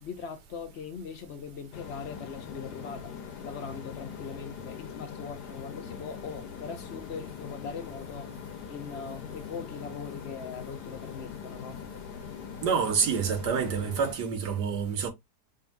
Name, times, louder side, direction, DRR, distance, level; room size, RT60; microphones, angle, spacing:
voice 1, 0.0-3.1 3.4-8.3 8.7-11.8, left 6 dB, 55° left, 0.8 m, -40 dB
sound 1, 1.7-14.1, left 7 dB, 80° left, 1.3 m, -42 dB
voice 2, 12.6-15.1, right 6 dB, 90° right, 1.5 m, -27 dB
5.2 x 2.6 x 2.5 m
omnidirectional pair, 1.7 m